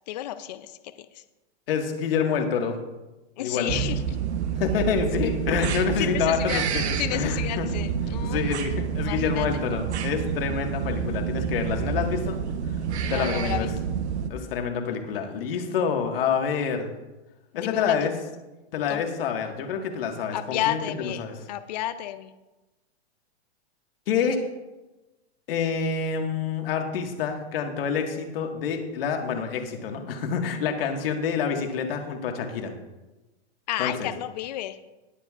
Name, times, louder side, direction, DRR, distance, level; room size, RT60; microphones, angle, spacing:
voice 1, 0.1-1.2 3.4-4.0 6.0-6.6 7.0-8.4 9.0-9.5 13.0-13.7 17.5-18.1 18.9-19.0 20.3-21.2 21.5-22.3 33.7-34.8, left 13 dB, 40° left, 12 dB, 0.5 m, -31 dB
voice 2, 1.7-2.8 3.4-3.7 4.6-7.7 8.2-12.4 13.1-13.7 14.3-16.9 17.5-18.1 18.7-21.3 24.1-24.4 25.5-32.7 33.8-34.1, left 6 dB, 55° left, 3 dB, 1.7 m, -27 dB
sound 1, 3.7-14.3, right 7 dB, 80° right, 1.0 m, -28 dB
20.0 x 7.6 x 2.4 m, 1.1 s
hypercardioid pair, 165°, 33 cm